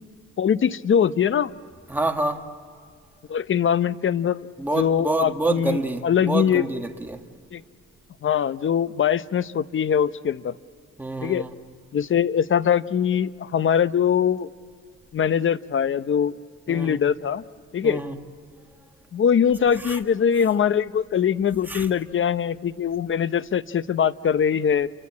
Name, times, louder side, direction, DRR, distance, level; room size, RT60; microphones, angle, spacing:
voice 1, 0.4-1.5 3.3-4.5 4.8-6.7 7.5-7.6 8.2-10.5 11.2-11.5 11.9-14.5 15.1-16.3 16.7-17.4 17.7-18.0 19.1-24.9, left 8 dB, 40° left, 0.7 m, -22 dB
voice 2, 1.9-2.5 4.6-7.2 11.0-11.5 16.7-17.0 17.8-18.2 19.8-20.0 21.7-21.9, right 2 dB, 5° right, 1.7 m, -27 dB
29.0 x 23.5 x 8.5 m
cardioid pair, 90°, 30 cm